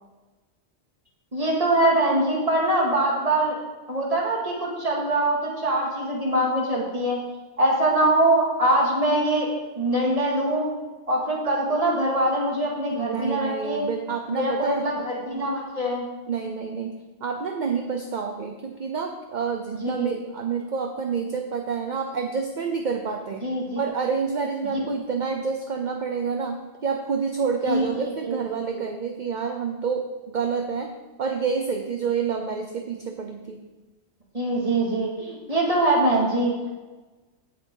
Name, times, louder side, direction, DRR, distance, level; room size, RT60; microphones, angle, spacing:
voice 1, 1.3-3.5 3.9-7.2 7.6-9.5 9.8-10.7 11.1-13.9 14.4-16.1 19.7-20.2 23.4-23.8 24.6-24.8 27.7-27.8 28.2-28.9 34.3-36.6, right 1 dB, 30° right, -3 dB, 2.3 m, -23 dB
voice 2, 13.0-14.9 16.3-16.9 17.2-23.5 23.8-30.9 31.2-33.6, right 5 dB, 45° right, 4 dB, 0.8 m, -28 dB
16.0 x 6.1 x 3.9 m, 1.2 s
omnidirectional pair, 1.2 m